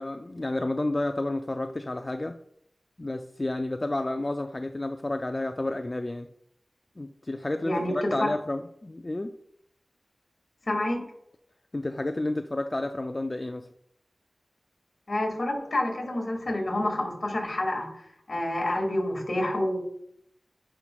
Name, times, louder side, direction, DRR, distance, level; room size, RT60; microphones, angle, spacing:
voice 1, 0.0-2.4 3.0-6.3 7.0-9.3 11.7-13.7, left 2 dB, 30° left, 7 dB, 0.3 m, -31 dB
voice 2, 7.6-8.3 10.7-11.0 15.1-17.9 18.3-19.8, left 1 dB, 55° left, 0 dB, 2.0 m, -28 dB
9.9 x 5.7 x 2.3 m, 0.74 s
wide cardioid pair, 75°, 0 cm